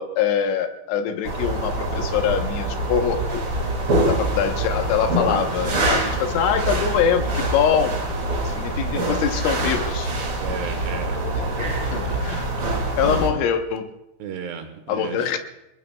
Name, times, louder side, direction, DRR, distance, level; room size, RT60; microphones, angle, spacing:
voice 1, 0.0-3.4 4.1-8.0 8.4-10.1 11.3-12.5 13.0-13.9 14.9-15.4, left 8 dB, 80° left, 5 dB, 3.4 m, -24 dB
sound 1, 1.2-13.3, right 2 dB, 35° right, 2.2 m, -25 dB
voice 2, 10.4-12.4 14.2-15.4, right 7 dB, 75° right, 7 dB, 3.0 m, -35 dB
28.5 x 20.0 x 2.3 m, 0.89 s
omnidirectional pair, 5.4 m